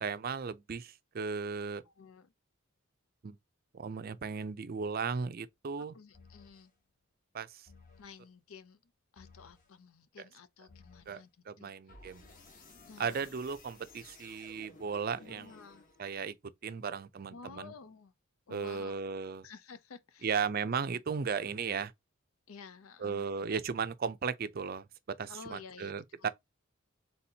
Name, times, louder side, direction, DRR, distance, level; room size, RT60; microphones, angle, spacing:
voice 1, 0.0-1.8 3.2-3.4 3.7-5.9 7.3-7.7 10.2-10.3 11.1-12.2 13.0-15.5 16.0-16.3 16.6-17.7 18.5-19.5 20.2-21.9 23.0-24.9 25.2-26.3, right 5 dB, 45° right, 0.4 m, -36 dB
voice 2, 1.8-2.3 5.8-6.7 8.0-11.3 11.6-11.7 12.9-13.3 15.1-15.8 17.3-18.1 18.5-19.0 19.4-20.4 22.5-23.3 25.3-25.9 26.2-26.3, left 5 dB, 80° left, 0.6 m, -52 dB
sound 1, 6.1-6.7 7.7-8.2 9.2-9.7 10.7-11.2 11.9-16.3, left 3 dB, 40° left, 1.0 m, -57 dB
4.2 x 3.8 x 2.8 m
head